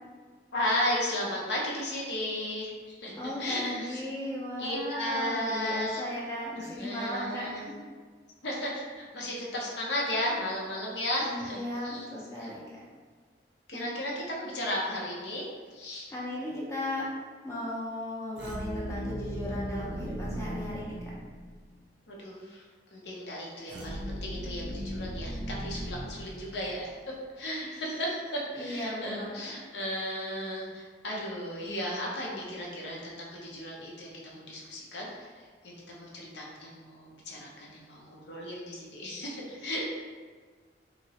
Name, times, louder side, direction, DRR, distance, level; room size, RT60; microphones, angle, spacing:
voice 1, 0.5-3.1 3.4-4.0 4.6-6.0 6.6-7.7 8.4-12.0 12.4-12.5 13.7-15.4 15.7-16.1 22.1-22.6 22.9-26.9 27.4-28.2 28.5-40.0, left 1 dB, 65° left, -3 dB, 0.7 m, -35 dB
voice 2, 3.1-7.8 11.2-12.6 13.7-13.9 16.1-17.1 17.4-21.2 28.5-29.4, left 1 dB, 15° left, -5 dB, 0.5 m, -36 dB
sound 1, 18.3-21.7 23.7-27.0, equal, 65° right, 0.5 m, -37 dB
2.9 x 2.9 x 2.8 m, 1.5 s
head